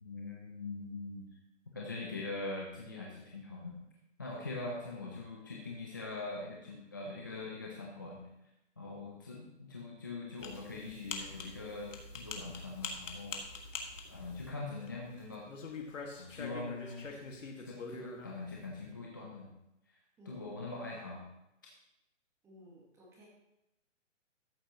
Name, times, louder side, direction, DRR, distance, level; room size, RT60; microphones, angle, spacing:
voice 1, 0.0-1.3 1.7-3.8 4.2-8.2 8.8-13.4 14.1-15.7 16.2-17.2 17.6-19.5 20.3-21.2, left 3 dB, 15° left, -2 dB, 0.4 m, -42 dB
sound 1, 10.4-15.1 15.3-18.4, left 4 dB, 80° left, 1.8 m, -44 dB
voice 2, 22.4-23.3, equal, 5° right, -4 dB, 1.2 m, -56 dB
12.5 x 8.7 x 2.9 m, 0.91 s
hypercardioid pair, 160°, 38 cm